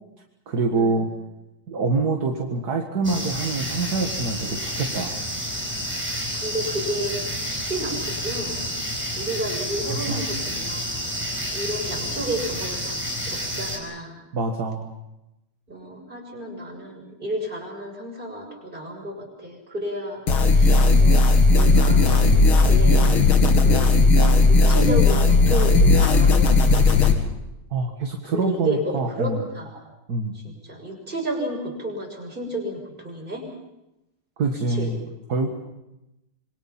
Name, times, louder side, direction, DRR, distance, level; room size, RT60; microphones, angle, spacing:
voice 1, 0.5-1.1 1.7-5.2 9.9-10.2 14.3-14.9 27.7-29.4 30.1-30.4 34.4-35.0 35.3-35.5, right 3 dB, 50° right, 2 dB, 2.3 m, -25 dB
sound 1, 3.0-13.8, equal, 5° right, 5.0 m, -30 dB
voice 2, 6.3-7.2 7.5-8.6 9.2-11.0 11.5-13.0 13.2-14.2 15.7-20.2 20.5-23.1 23.6-24.0 24.5-26.8 28.2-29.8 30.3-33.4 34.7-34.9, right 1 dB, 25° right, 0 dB, 6.7 m, -31 dB
sound 2, 20.3-27.1, left 3 dB, 90° left, 3.0 m, -16 dB
27.0 x 24.0 x 5.9 m, 0.92 s
omnidirectional pair, 2.2 m